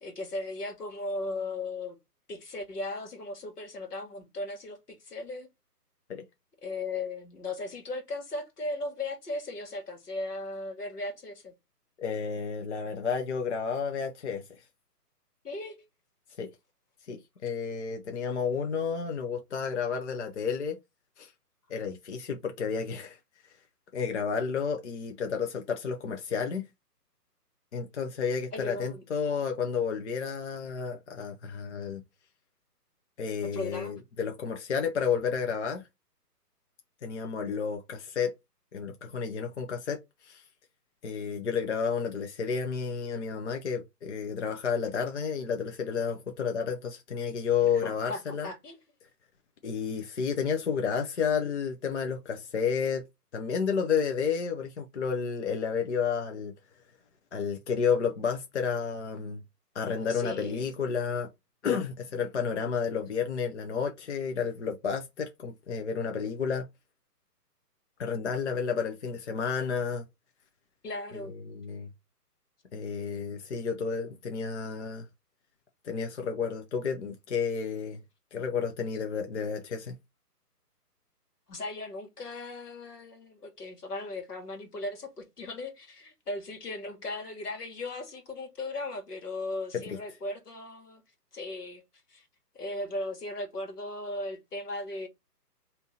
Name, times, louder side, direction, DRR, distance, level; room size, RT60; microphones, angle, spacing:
voice 1, 0.0-2.0 2.3-5.5 6.6-11.5 15.4-15.8 28.5-29.0 33.4-33.9 47.6-48.8 59.9-60.7 70.8-71.4 81.5-91.0 91.3-91.8 92.1-92.3 92.6-95.1, left 2 dB, 70° left, 1.7 m, -37 dB
voice 2, 12.0-14.6 16.4-16.5 17.1-20.8 21.2-21.3 21.7-23.2 23.9-26.7 27.7-32.0 33.2-35.9 37.0-38.3 38.7-40.4 41.0-48.5 49.6-53.0 53.3-56.5 57.3-59.4 59.7-61.3 61.6-66.7 68.0-70.0 71.4-71.9 72.7-75.1 75.8-78.0 78.3-79.9 89.9-90.0, left 6 dB, 45° left, 0.7 m, -31 dB
3.3 x 2.8 x 4.1 m
figure-of-eight pair, 150°, 48 cm